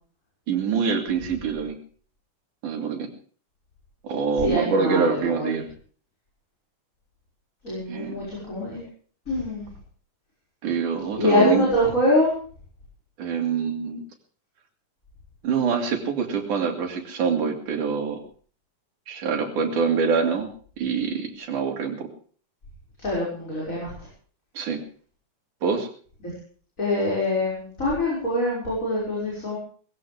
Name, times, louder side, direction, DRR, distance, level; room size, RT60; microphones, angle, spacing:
voice 1, 0.5-1.8 2.6-3.1 4.0-5.7 7.9-8.1 10.6-11.7 13.2-14.0 15.4-18.2 19.1-20.5 20.8-22.1 24.6-24.8 25.6-25.9, right 6 dB, 75° right, 4 dB, 4.1 m, -25 dB
voice 2, 4.4-5.5 7.6-8.8 9.3-9.7 11.2-12.3 23.0-23.9 26.8-29.6, left 1 dB, 25° left, -5 dB, 6.5 m, -24 dB
20.0 x 16.0 x 3.5 m, 0.44 s
omnidirectional pair, 3.6 m